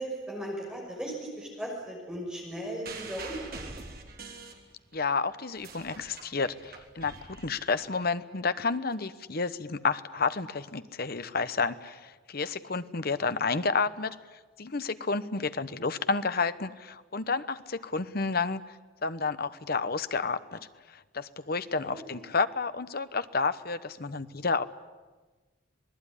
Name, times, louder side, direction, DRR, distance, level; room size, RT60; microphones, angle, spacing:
voice 1, 0.0-3.8 21.8-22.1, right 1 dB, 5° right, -2 dB, 6.1 m, -37 dB
sound 1, 2.8-5.1 5.4-8.0 8.9-9.0, right 3 dB, 50° right, 3.4 m, -44 dB
voice 2, 4.9-14.2 14.6-18.6 19.0-20.6 20.9-24.6, left 4 dB, 50° left, 13 dB, 1.0 m, -30 dB
26.5 x 19.5 x 9.9 m, 1.3 s
head